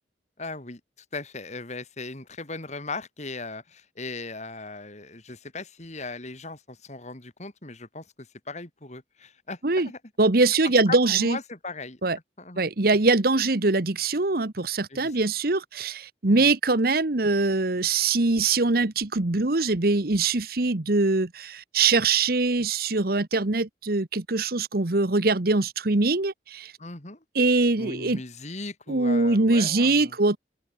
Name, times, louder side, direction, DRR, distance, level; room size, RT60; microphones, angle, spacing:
voice 1, 0.4-0.8 1.1-10.0 10.6-12.0 12.4-12.6 14.9-15.2 16.3-16.5 26.8-27.2 27.8-30.2, left 3 dB, 40° left, 3.1 m, -38 dB
voice 2, 10.2-11.4 12.0-12.2 12.6-26.7 27.3-28.2 28.9-30.4, right 3 dB, 55° right, 1.2 m, -23 dB
open air
head